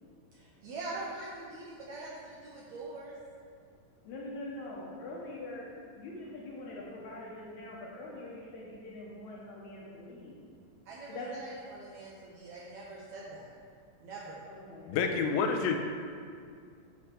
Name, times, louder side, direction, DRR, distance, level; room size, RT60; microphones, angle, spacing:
voice 1, 0.3-3.1 10.9-13.5 14.0-14.5, right 2 dB, 75° right, -5 dB, 1.7 m, -43 dB
voice 2, 4.0-5.7 5.9-10.4 11.1-11.3 14.5-14.9, left 2 dB, 70° left, -4 dB, 2.1 m, -43 dB
voice 3, 14.9-15.8, left 5 dB, 90° left, 5 dB, 2.4 m, -28 dB
8.2 x 3.1 x 6.0 m, 2.2 s
omnidirectional pair, 4.0 m